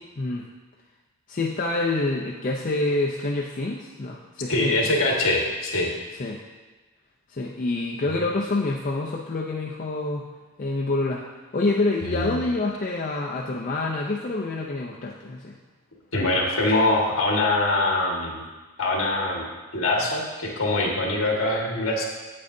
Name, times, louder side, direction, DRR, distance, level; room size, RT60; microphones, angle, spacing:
voice 1, 0.2-0.5 1.3-4.8 6.2-6.4 7.3-10.3 10.6-11.3 11.5-15.6, left 2 dB, 40° left, -2 dB, 0.5 m, -27 dB
voice 2, 4.5-5.9 12.0-12.4 16.1-18.4 18.8-19.4 19.7-22.0, left 2 dB, 65° left, -1 dB, 1.6 m, -23 dB
8.6 x 8.6 x 2.7 m, 1.3 s
head